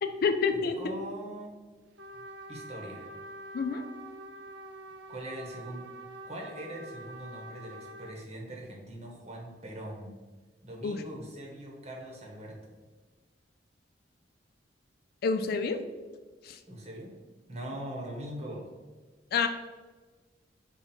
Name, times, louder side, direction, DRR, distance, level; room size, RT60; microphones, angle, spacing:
voice 1, 0.0-0.8 3.5-3.8 10.8-11.0 15.2-15.8 16.5-16.6 19.3-19.5, left 5 dB, 55° left, 7 dB, 0.4 m, -28 dB
voice 2, 0.5-1.5 2.5-3.1 5.1-5.9 6.3-10.2 10.6-12.7 16.7-17.1 17.5-18.7, right 1 dB, 40° right, -1 dB, 1.0 m, -41 dB
Trumpet, 2.0-8.2, right 1 dB, 80° right, 0.5 m, -46 dB
5.4 x 2.3 x 4.3 m, 1.4 s
head